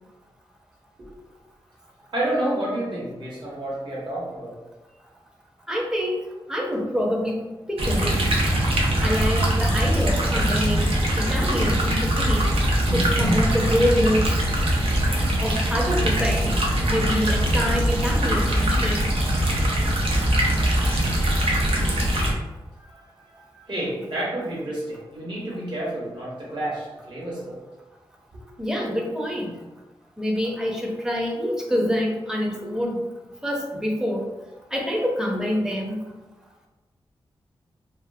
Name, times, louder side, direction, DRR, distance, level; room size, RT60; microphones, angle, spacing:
voice 1, 2.1-4.5 22.8-27.6, right 1 dB, 55° right, -6 dB, 1.2 m, -30 dB
voice 2, 5.7-6.2 6.5-8.2 9.0-12.6 12.9-14.3 15.4-16.6 16.9-19.1 28.6-29.5 30.2-33.0 33.4-34.3 34.7-36.0, equal, 5° right, -1 dB, 0.5 m, -26 dB
sound 1, 7.8-22.3, right 1 dB, 90° right, 0.5 m, -22 dB
2.4 x 2.3 x 2.6 m, 1.1 s
wide cardioid pair, 90°, 9 cm